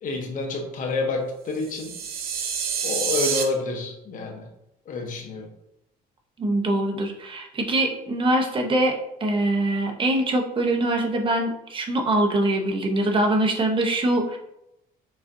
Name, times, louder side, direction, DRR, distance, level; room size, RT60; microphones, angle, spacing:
voice 1, 0.0-2.0 2.8-4.5 4.9-5.5, left 3 dB, 50° left, 2 dB, 0.9 m, -28 dB
sound 1, 1.6-3.4, right 7 dB, 65° right, 0.7 m, -27 dB
voice 2, 6.4-14.4, right 1 dB, 30° right, 2 dB, 0.8 m, -23 dB
6.1 x 2.5 x 2.6 m, 0.83 s
cardioid pair, 110°, 17 cm